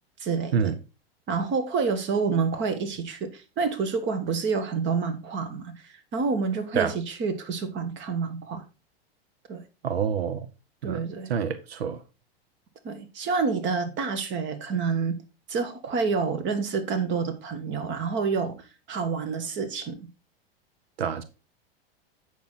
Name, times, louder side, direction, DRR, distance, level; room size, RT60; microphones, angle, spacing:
voice 1, 0.2-0.7 1.3-8.6 9.5-9.6 10.8-11.3 12.8-15.2 15.5-20.1, right 5 dB, 40° right, 1.7 m, -28 dB
voice 2, 9.8-10.5 10.8-11.0 11.3-12.0 21.0-21.2, right 7 dB, 90° right, 0.9 m, -26 dB
8.4 x 6.2 x 4.0 m
hypercardioid pair, 105°, 30 cm